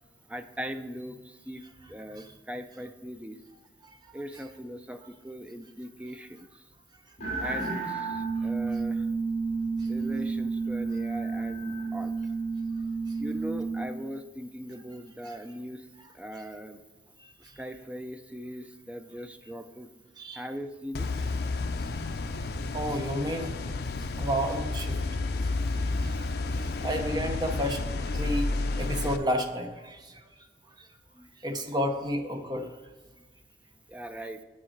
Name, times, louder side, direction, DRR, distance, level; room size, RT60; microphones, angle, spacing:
voice 1, 0.3-3.4 4.1-6.6 7.4-9.1 9.9-12.1 13.2-15.9 16.1-16.8 17.6-19.9 20.3-21.3 26.1-26.2 31.1-31.3 33.9-34.4, equal, 5° right, 8 dB, 0.4 m, -40 dB
sound 1, 7.2-13.8, right 4 dB, 40° left, 2.2 m, -31 dB
sound 2, 20.9-29.2, left 3 dB, 60° left, 0.5 m, -31 dB
voice 2, 22.7-23.5 24.2-25.2 25.8-26.3 26.5-27.8 28.1-30.2 31.4-32.7, equal, 25° right, 4 dB, 0.8 m, -31 dB
7.5 x 6.3 x 4.5 m, 1.3 s
head